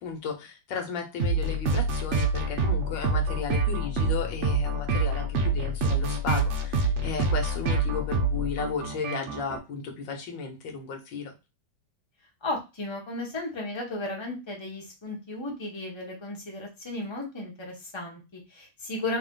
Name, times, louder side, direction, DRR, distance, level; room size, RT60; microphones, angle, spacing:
voice 1, 0.0-11.3, left 4 dB, 70° left, 3 dB, 1.6 m, -34 dB
sound 1, 1.2-9.6, right 2 dB, 60° right, 0.7 m, -26 dB
voice 2, 12.4-19.2, left 2 dB, 20° left, -1 dB, 0.9 m, -35 dB
3.4 x 3.0 x 3.8 m, 0.26 s
omnidirectional pair, 2.2 m